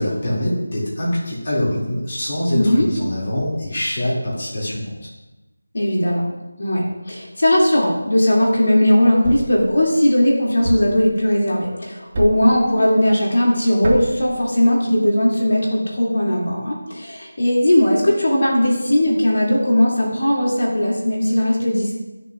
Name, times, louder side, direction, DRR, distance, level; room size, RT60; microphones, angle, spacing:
voice 1, 0.0-5.0, left 1 dB, 35° left, -6 dB, 2.4 m, -23 dB
voice 2, 2.5-2.9 5.7-6.2 6.6-22.0, left 1 dB, 60° left, -3 dB, 2.4 m, -18 dB
Thump thud, 9.2-9.6 10.6-11.0 12.1-12.5 13.8-14.2, right 1 dB, 30° right, 1.0 m, -25 dB
14.0 x 6.8 x 2.4 m, 1.1 s
figure-of-eight pair, 175°, 0 cm